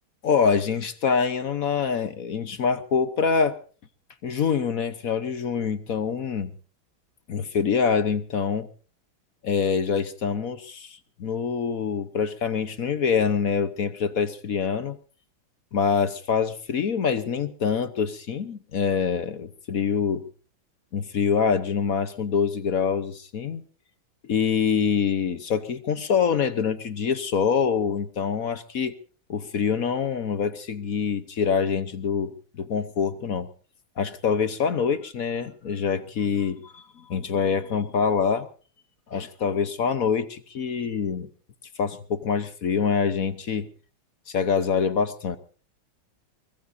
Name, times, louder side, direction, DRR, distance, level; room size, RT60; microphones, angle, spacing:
voice 1, 0.2-3.5 4.2-6.5 7.3-8.7 9.4-15.0 15.7-20.2 20.9-23.6 24.2-28.9 29.3-33.5 34.0-38.5 39.1-41.3 41.8-43.7 44.3-45.4, left 6 dB, 50° left, 11 dB, 1.2 m, -25 dB
23.0 x 20.5 x 2.7 m, 0.40 s
omnidirectional pair, 2.4 m